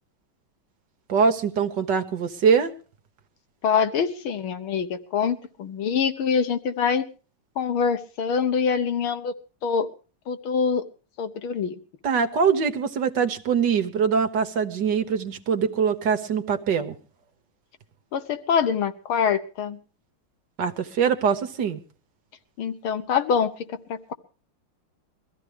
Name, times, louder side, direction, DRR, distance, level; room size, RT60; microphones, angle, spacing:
voice 1, 1.1-2.7 12.0-17.0 20.6-21.8, right 6 dB, 60° right, 1.6 m, -23 dB
voice 2, 3.6-7.1 7.6-9.3 9.6-9.9 10.3-10.8 11.2-11.8 18.1-19.8 22.6-24.1, left 6 dB, 80° left, 2.0 m, -25 dB
22.5 x 14.5 x 3.4 m
omnidirectional pair, 2.3 m